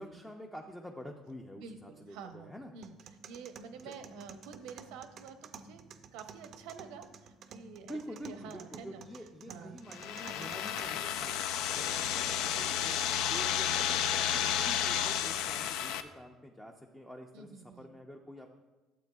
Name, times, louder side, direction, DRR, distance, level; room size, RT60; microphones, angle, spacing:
voice 1, 0.0-2.7 3.8-3.9 7.8-12.9 13.2-18.5, equal, 5° left, 1 dB, 0.5 m, -47 dB
voice 2, 1.6-5.8 6.1-9.0 9.4-9.8 10.2-10.5 10.8-11.2 12.5-13.4 14.3-14.6 17.3-17.9, right 6 dB, 85° right, 7 dB, 0.7 m, -49 dB
sound 1, 2.8-10.8, right 5 dB, 45° right, 0.4 m, -52 dB
sound 2, 9.9-16.0, left 10 dB, 75° left, 0.4 m, -32 dB
12.0 x 8.0 x 2.3 m, 1.2 s
cardioid pair, 135°, 0 cm